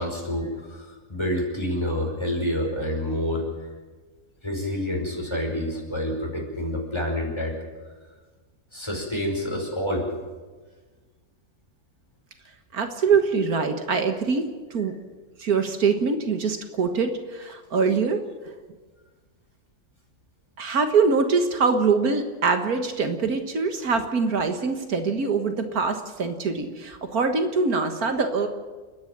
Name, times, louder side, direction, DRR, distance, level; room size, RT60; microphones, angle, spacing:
voice 1, 0.0-3.4 4.4-7.5 8.7-10.1, left 1 dB, 15° left, 0 dB, 5.3 m, -28 dB
voice 2, 12.7-15.0 15.4-18.3 20.6-28.5, right 5 dB, 75° right, 7 dB, 2.0 m, -24 dB
29.5 x 10.5 x 8.8 m, 1.4 s
omnidirectional pair, 1.6 m